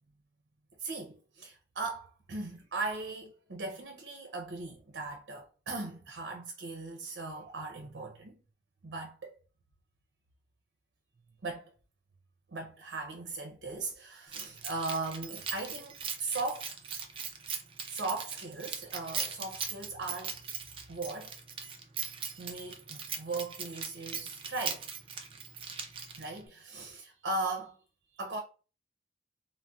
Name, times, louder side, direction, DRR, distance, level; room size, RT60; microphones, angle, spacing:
voice 1, 0.8-8.4 8.8-9.4 11.4-11.7 12.5-16.7 17.8-20.4 20.9-21.3 22.4-24.9 26.2-27.8 28.1-28.4, right 3 dB, 80° right, 0.6 m, -38 dB
Keys jangling, 14.3-26.4, right 6 dB, 30° right, 0.3 m, -40 dB
3.9 x 2.1 x 2.3 m
head